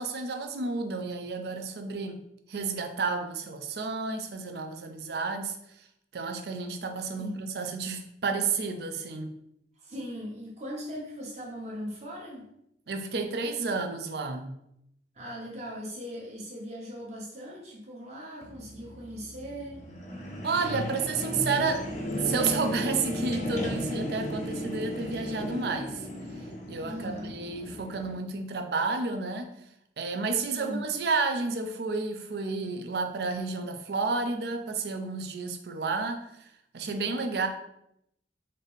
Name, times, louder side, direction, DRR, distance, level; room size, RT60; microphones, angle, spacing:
voice 1, 0.0-2.2 2.5-5.6 6.1-9.3 12.9-14.5 20.4-21.9 22.2-26.1 26.7-29.5 30.0-36.3 36.7-37.5, right 4 dB, 65° right, 6 dB, 0.5 m, -31 dB
voice 2, 9.8-12.5 15.1-19.8 26.8-27.3 30.5-30.9, equal, 40° right, -3 dB, 1.0 m, -39 dB
sound 1, 18.4-28.2, equal, 40° left, 0.5 m, -35 dB
4.0 x 2.6 x 3.5 m, 0.77 s
head